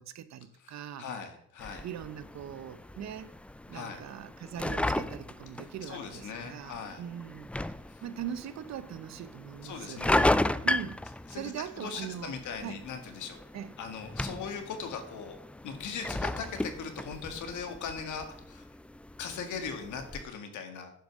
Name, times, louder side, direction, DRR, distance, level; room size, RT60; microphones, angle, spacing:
voice 1, 0.0-1.1 1.8-3.3 3.7-7.5 8.0-10.1 10.6-11.0 11.3-12.8 13.5-13.7, right 9 dB, 60° right, 0.8 m, -41 dB
voice 2, 0.6-1.9 3.7-4.0 5.8-7.0 9.6-10.3 11.3-13.4 13.8-15.4 15.6-18.7 19.2-20.9, left 6 dB, 75° left, 1.9 m, -39 dB
sound 1, 1.6-20.2, left 1 dB, 5° left, 0.3 m, -35 dB
10.0 x 5.2 x 6.2 m
cardioid pair, 90°, 30 cm